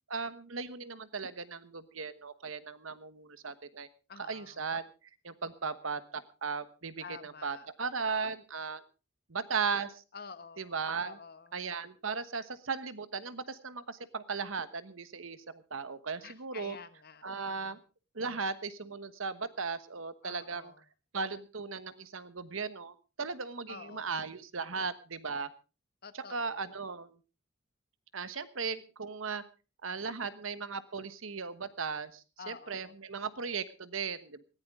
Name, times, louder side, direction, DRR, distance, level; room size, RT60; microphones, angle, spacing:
voice 1, 0.1-3.9 4.3-4.9 5.2-8.8 9.3-10.0 10.6-11.2 11.5-16.8 17.2-17.8 18.1-20.7 21.1-25.5 26.3-27.2 28.1-29.4 29.8-34.4, right 5 dB, 85° right, 13 dB, 1.2 m, -37 dB
voice 2, 4.1-4.6 7.0-7.7 10.1-10.7 11.0-11.5 16.2-17.8 20.2-20.8 23.7-24.1 26.0-26.8 32.4-32.9, left 5 dB, 50° left, 12 dB, 1.2 m, -49 dB
19.5 x 14.5 x 3.6 m, 0.32 s
head